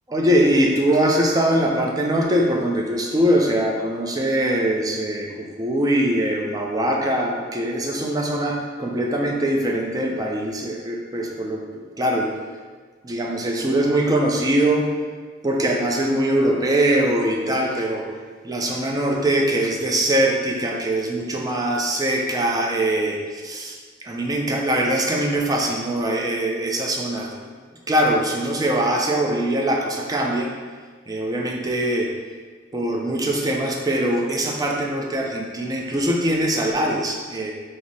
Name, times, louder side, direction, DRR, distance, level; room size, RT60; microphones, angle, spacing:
voice 1, 0.1-12.3 13.0-14.9 15.4-18.0 18.4-27.5 27.9-30.5 31.1-32.1 32.7-37.5, right 1 dB, 20° right, 0 dB, 0.4 m, -22 dB
4.6 x 2.0 x 4.1 m, 1.5 s
head